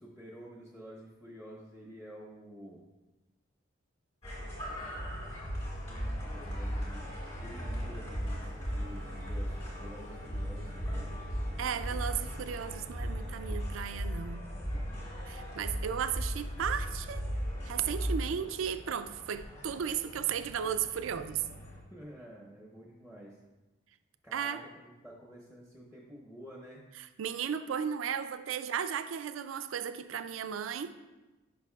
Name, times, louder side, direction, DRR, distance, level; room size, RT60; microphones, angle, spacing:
voice 1, 0.0-2.9 5.1-7.1 7.4-11.2 14.7-15.0 21.9-23.4 24.2-26.9, equal, 10° left, -3 dB, 0.7 m, -50 dB
sound 1, 4.2-21.8, equal, 35° left, 1.7 m, -37 dB
sound 2, 6.3-13.3, left 1 dB, 75° left, 0.9 m, -55 dB
voice 2, 11.6-14.4 15.3-17.3 17.6-21.5 24.3-24.6 27.0-31.0, right 8 dB, 80° right, 11 dB, 0.4 m, -35 dB
10.0 x 5.2 x 2.4 m, 1.1 s
head